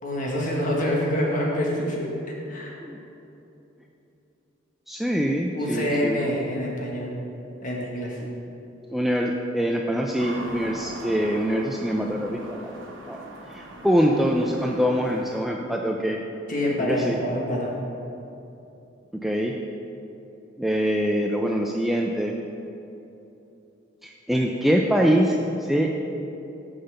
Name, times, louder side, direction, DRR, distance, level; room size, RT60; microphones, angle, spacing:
voice 1, 0.0-2.1 2.5-2.8 5.5-7.1 7.6-8.2 16.5-17.7, equal, 40° left, -2 dB, 1.5 m, -26 dB
voice 2, 4.9-6.2 8.9-12.6 13.1-13.2 13.5-16.2 16.8-17.2 19.1-19.5 20.6-22.3 24.0-25.9, equal, ahead, 0 dB, 0.3 m, -24 dB
sound 1, 10.2-15.4, right 1 dB, 85° right, 1.0 m, -40 dB
6.7 x 5.6 x 6.7 m, 2.9 s
head